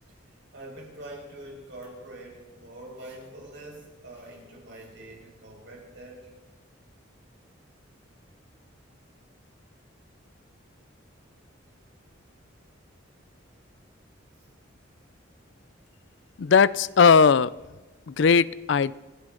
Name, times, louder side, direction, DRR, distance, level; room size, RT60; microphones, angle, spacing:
voice 1, 0.5-6.3, right 1 dB, 60° right, 5.5 m, -44 dB
voice 2, 16.4-17.5 18.1-18.9, left 5 dB, 65° left, 0.4 m, -18 dB
30.0 x 12.5 x 3.9 m
head